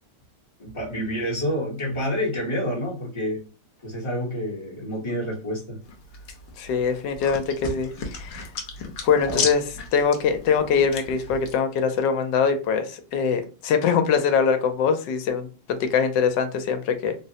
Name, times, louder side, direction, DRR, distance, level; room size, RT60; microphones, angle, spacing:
voice 1, 0.6-3.4 3.8-5.8 9.1-9.5, equal, 25° left, -4 dB, 0.8 m, -28 dB
sound 1, 5.8-11.5, left 4 dB, 65° left, 1.0 m, -34 dB
voice 2, 6.6-8.5 9.0-9.6 9.9-17.2, left 6 dB, 80° left, 8 dB, 1.2 m, -23 dB
3.7 x 2.0 x 2.7 m, 0.35 s
omnidirectional pair, 1.9 m